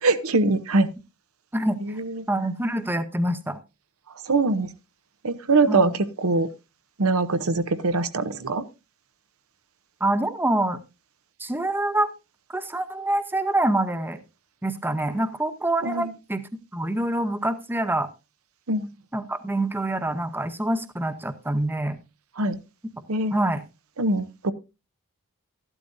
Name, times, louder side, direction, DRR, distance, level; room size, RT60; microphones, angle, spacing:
voice 1, 0.0-0.9 1.8-2.2 4.3-4.7 5.2-6.5 7.0-8.6 15.8-16.1 18.7-18.9 22.4-22.6 23.1-23.4 24.0-24.5, right 3 dB, 70° right, 0.9 m, -23 dB
voice 2, 1.5-2.0 2.3-3.6 5.7-6.0 10.0-10.8 11.4-12.1 12.5-14.2 14.6-16.4 16.7-18.1 19.1-22.0 23.3-23.6, right 1 dB, 10° right, 0.8 m, -26 dB
13.5 x 12.0 x 2.6 m
head